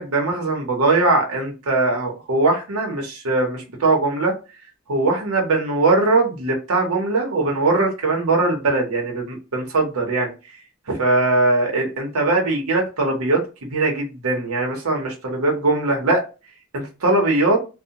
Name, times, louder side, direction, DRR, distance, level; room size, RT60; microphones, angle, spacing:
voice 1, 0.0-4.3 4.9-10.3 10.9-13.4 13.7-16.2 16.7-17.6, right 2 dB, 90° right, 0 dB, 0.8 m, -20 dB
2.6 x 2.1 x 2.7 m, 0.30 s
head